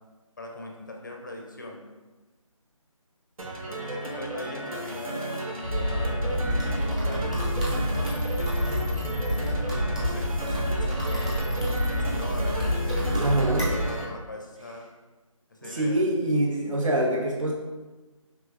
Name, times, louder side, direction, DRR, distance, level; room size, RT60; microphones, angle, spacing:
voice 1, 0.4-1.8 3.7-11.3 11.9-14.9 15.5-16.0, left 2 dB, 35° left, 1 dB, 0.5 m, -41 dB
sound 1, 3.4-14.1, right 1 dB, 85° right, 0.8 m, -34 dB
sound 2, 5.6-13.9, equal, 15° right, 0.5 m, -27 dB
voice 2, 13.1-13.7 15.6-17.5, right 1 dB, 70° right, -1 dB, 1.1 m, -25 dB
5.0 x 3.5 x 2.4 m, 1.2 s
figure-of-eight pair, 170°, 17 cm